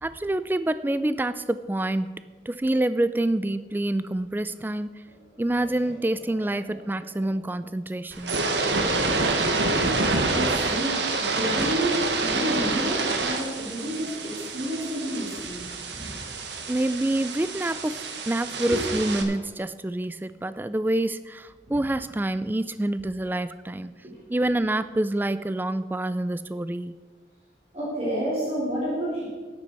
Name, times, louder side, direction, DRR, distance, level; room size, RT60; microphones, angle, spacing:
voice 1, 0.0-4.9 5.4-8.4 16.7-23.9 24.3-27.0, right 1 dB, 10° right, 13 dB, 0.3 m, -27 dB
voice 2, 5.5-5.9 6.3-7.5 10.0-15.6 15.9-16.2 18.7-18.8 21.6-21.8 24.0-24.1 27.7-29.2, right 1 dB, 35° right, -8 dB, 3.4 m, -31 dB
sound 1, 8.1-19.2, right 3 dB, 85° right, 1.3 m, -27 dB
13.5 x 9.9 x 4.5 m, 1.4 s
head